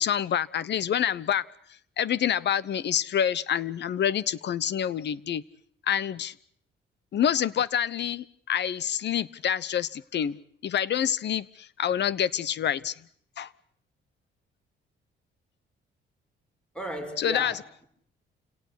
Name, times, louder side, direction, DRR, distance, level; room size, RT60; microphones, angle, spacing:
voice 1, 0.0-1.4 2.0-5.4 5.9-6.3 7.1-12.9 13.4-13.5 17.2-17.5, left 9 dB, 60° left, 21 dB, 1.0 m, -27 dB
voice 2, 16.7-17.9, right 1 dB, 5° left, 5 dB, 5.5 m, -36 dB
28.5 x 18.0 x 8.3 m, 0.63 s
cardioid pair, 90°, 20 cm